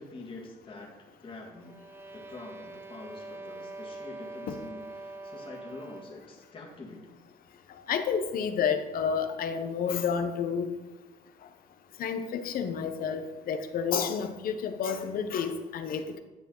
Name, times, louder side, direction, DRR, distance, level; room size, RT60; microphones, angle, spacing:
voice 1, 0.0-1.8 2.1-7.2, left 3 dB, 30° left, -2 dB, 2.1 m, -46 dB
sound 1, 1.6-6.3, right 2 dB, 15° right, 0.7 m, -44 dB
voice 2, 7.9-10.7 12.0-16.2, left 6 dB, 60° left, 8 dB, 1.0 m, -30 dB
11.5 x 7.0 x 3.9 m, 1.2 s
cardioid pair, 110°, 17 cm